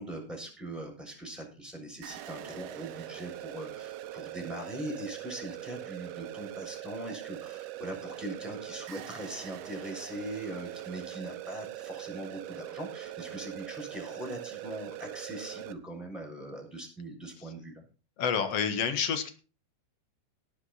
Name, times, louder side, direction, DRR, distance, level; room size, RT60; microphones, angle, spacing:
voice 1, 0.0-17.8, right 1 dB, ahead, 2 dB, 6.5 m, -41 dB
sound 1, 2.0-15.7, right 13 dB, 75° right, 2.7 m, -42 dB
voice 2, 18.2-19.3, left 7 dB, 60° left, 8 dB, 1.7 m, -29 dB
18.0 x 8.2 x 4.2 m, 0.35 s
omnidirectional pair, 5.0 m